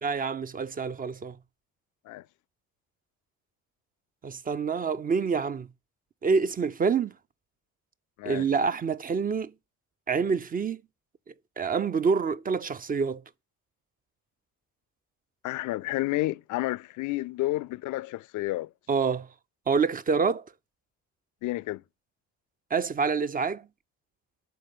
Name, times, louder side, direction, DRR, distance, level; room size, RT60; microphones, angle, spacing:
voice 1, 0.0-1.4 4.2-5.7 6.2-7.1 8.3-9.5 10.1-10.8 11.6-13.2 18.9-19.3 19.7-20.5 22.7-23.7, right 5 dB, 30° right, 0.4 m, -27 dB
voice 2, 15.4-18.7 21.4-21.8, left 17 dB, 75° left, 0.5 m, -30 dB
9.2 x 3.9 x 6.7 m
cardioid pair, 90°, 30 cm